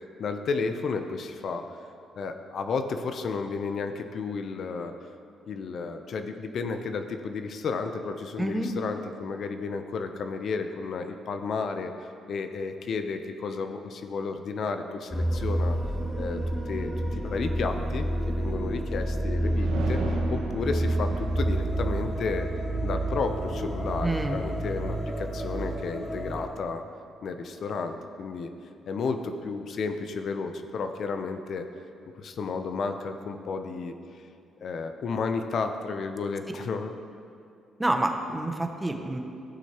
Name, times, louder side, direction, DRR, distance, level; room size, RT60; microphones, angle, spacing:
voice 1, 0.2-1.6 2.2-4.9 5.5-11.9 12.3-15.8 16.2-18.1 18.4-22.5 22.8-26.8 27.2-28.5 28.9-31.7 32.2-33.9 34.6-36.9, left 4 dB, 60° left, 7 dB, 0.6 m, -32 dB
voice 2, 8.4-8.7 24.0-24.4 37.8-39.2, right 1 dB, 10° right, 4 dB, 0.8 m, -28 dB
sound 1, 15.1-26.5, right 1 dB, 5° left, 1.3 m, -29 dB
sound 2, 19.4-24.8, right 4 dB, 85° right, 0.9 m, -39 dB
15.0 x 6.2 x 2.9 m, 2.5 s
cardioid pair, 90°, 0 cm